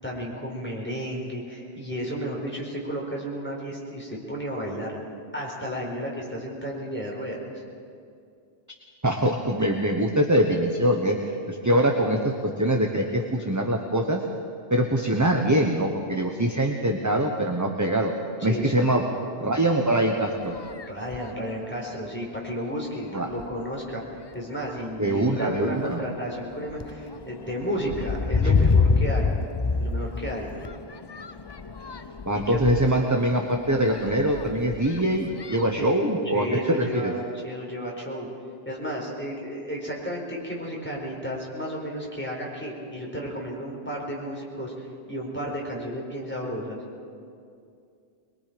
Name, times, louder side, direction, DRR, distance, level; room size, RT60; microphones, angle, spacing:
voice 1, 0.0-4.9 5.3-7.6 18.4-19.0 20.9-29.3 29.8-30.5 32.3-32.6 35.7-38.3 38.7-46.8, equal, 10° left, -3 dB, 4.3 m, -33 dB
voice 2, 9.0-14.2 14.7-18.1 18.4-19.0 19.4-20.6 23.1-23.3 25.0-26.0 28.4-28.5 32.3-37.1, right 1 dB, 15° right, 2 dB, 1.1 m, -23 dB
sound 1, 20.4-21.4 22.1-22.2 22.7-23.0 23.3-23.9 24.6-24.8 25.2-35.9, left 4 dB, 30° left, 0.5 m, -28 dB
23.0 x 22.5 x 5.2 m, 2.4 s
omnidirectional pair, 1.1 m